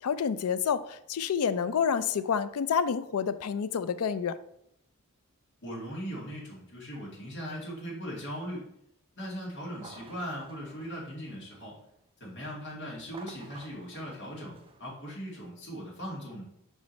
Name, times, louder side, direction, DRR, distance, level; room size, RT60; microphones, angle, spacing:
voice 1, 0.0-4.4, left 7 dB, 75° left, 14 dB, 0.4 m, -28 dB
voice 2, 5.6-8.6 9.1-11.8 12.2-16.4, equal, 55° left, -4 dB, 2.2 m, -39 dB
sound 1, 9.7-11.9 13.0-15.5, right 3 dB, 25° right, 0.5 m, -53 dB
5.2 x 4.8 x 4.1 m, 0.75 s
head